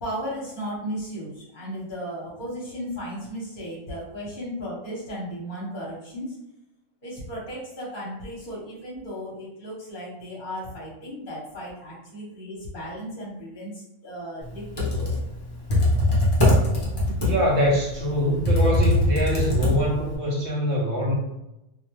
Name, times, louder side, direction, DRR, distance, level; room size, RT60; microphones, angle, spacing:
voice 1, 0.0-6.4 7.0-15.2 15.7-15.8, equal, 45° left, -7 dB, 0.9 m, -35 dB
Computer keyboard, 14.6-20.2, left 1 dB, 30° left, 0.5 m, -22 dB
voice 2, 17.2-21.2, equal, 65° right, -3 dB, 0.8 m, -24 dB
2.5 x 2.2 x 3.0 m, 0.89 s
omnidirectional pair, 1.4 m